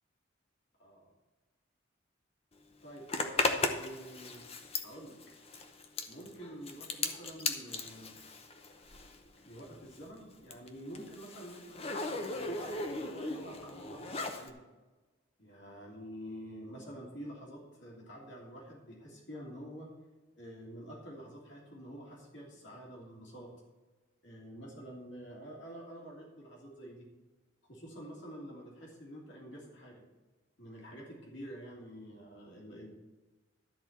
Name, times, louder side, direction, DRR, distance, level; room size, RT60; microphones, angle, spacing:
voice 1, 2.8-4.4 4.8-5.2 6.1-8.2 9.4-14.6 15.4-19.9 20.3-23.5 24.2-27.1 27.7-30.0 30.6-32.9, equal, 65° left, -3 dB, 3.0 m, -48 dB
Zipper (clothing), 3.1-9.3 9.5-14.5, left 3 dB, 30° left, 0.8 m, -37 dB
12.5 x 4.4 x 8.1 m, 1.2 s
head